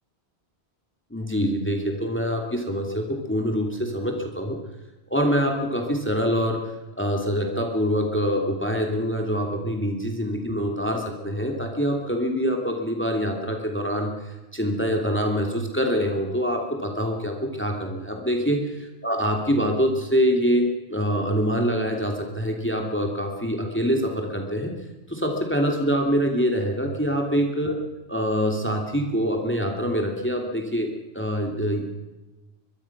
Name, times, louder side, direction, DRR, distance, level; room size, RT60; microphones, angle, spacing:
voice 1, 1.1-4.6 5.1-24.7 25.1-27.7 28.1-30.9 31.1-31.9, equal, 10° left, 2 dB, 2.8 m, -25 dB
24.5 x 22.5 x 6.0 m, 1.1 s
omnidirectional pair, 1.1 m